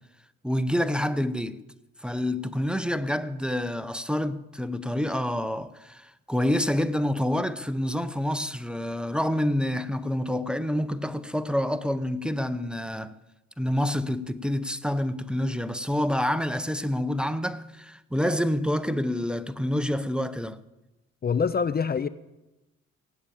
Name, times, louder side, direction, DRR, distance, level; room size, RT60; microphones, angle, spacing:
voice 1, 0.4-1.6 2.0-13.1 13.6-20.6, left 1 dB, 5° right, 0.7 m, -27 dB
voice 2, 21.2-22.1, left 6 dB, 30° left, 0.6 m, -25 dB
17.5 x 8.6 x 8.7 m
cardioid pair, 90°, 30 cm